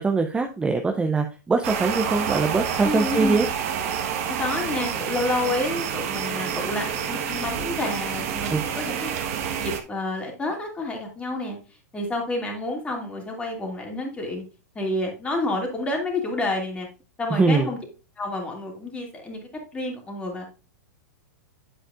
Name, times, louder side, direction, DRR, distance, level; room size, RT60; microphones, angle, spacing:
voice 1, 0.0-3.5 8.5-8.6 17.3-17.7, right 4 dB, 10° right, 5 dB, 0.6 m, -22 dB
sound 1, 1.6-9.8, right 8 dB, 55° right, 1.3 m, -28 dB
voice 2, 2.8-3.5 4.2-9.1 9.6-11.6 11.9-14.4 14.7-16.9 17.2-17.8 18.2-20.4, left 2 dB, 10° left, 1 dB, 2.4 m, -29 dB
8.7 x 7.5 x 2.5 m, 0.33 s
hypercardioid pair, 140°, 9 cm